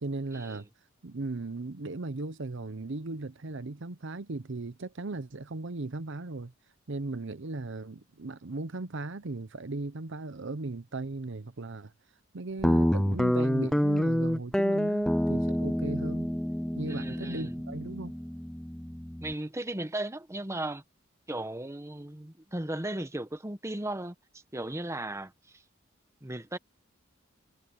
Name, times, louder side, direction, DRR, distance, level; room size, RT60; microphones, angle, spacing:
voice 1, 0.0-0.7 1.0-6.5 6.9-11.9 12.3-16.3 16.7-18.1, right 2 dB, 65° right, 0.8 m, -37 dB
Guitar, 12.6-19.3, equal, 5° left, 0.5 m, -28 dB
voice 2, 16.9-17.5 19.2-20.8 21.3-24.1 24.5-25.3 26.2-26.6, right 1 dB, 15° right, 1.0 m, -36 dB
head